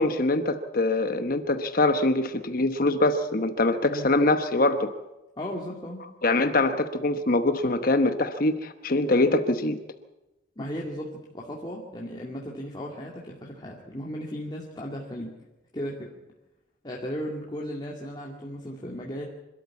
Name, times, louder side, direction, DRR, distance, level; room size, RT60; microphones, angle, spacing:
voice 1, 0.0-4.9 6.2-9.8, left 2 dB, 50° left, 8 dB, 1.0 m, -23 dB
voice 2, 5.4-6.0 10.6-15.4 15.7-16.1 16.8-19.3, equal, 25° left, -3 dB, 2.3 m, -36 dB
26.0 x 13.0 x 8.4 m, 1.0 s
head